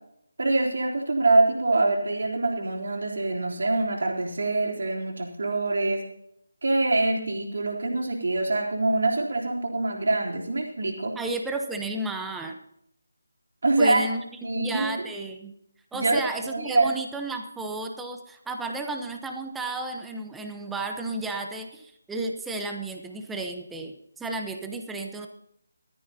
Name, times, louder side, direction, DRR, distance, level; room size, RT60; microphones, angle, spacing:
voice 1, 0.4-6.0 6.6-11.1 13.6-14.0 14.4-15.1 15.9-16.9, right 2 dB, 60° right, -1 dB, 3.6 m, -24 dB
voice 2, 11.1-12.6 13.8-14.2 14.5-15.5 15.9-25.3, right 2 dB, 5° right, 3 dB, 1.0 m, -33 dB
19.0 x 13.5 x 2.9 m, 0.75 s
figure-of-eight pair, 160°, 0 cm